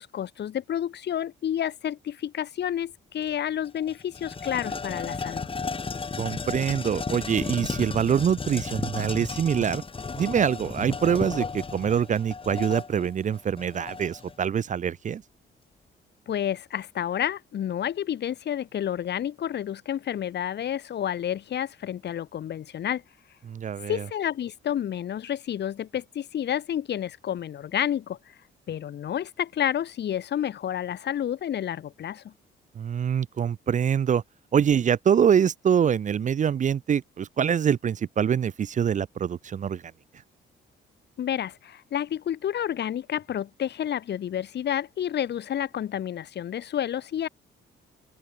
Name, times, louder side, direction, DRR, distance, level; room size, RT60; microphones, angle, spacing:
voice 1, 0.0-5.5 16.3-23.0 23.9-28.2 28.7-32.3 41.2-47.3, left 10 dB, 60° left, 1.3 m, -30 dB
sound 1, 3.2-3.3 3.6-14.3, left 4 dB, 25° left, 1.4 m, -34 dB
voice 2, 6.2-9.8 10.2-15.2 23.5-24.0 32.8-34.2 34.5-39.8, right 8 dB, 40° right, 0.5 m, -24 dB
open air
cardioid pair, 90°, 20 cm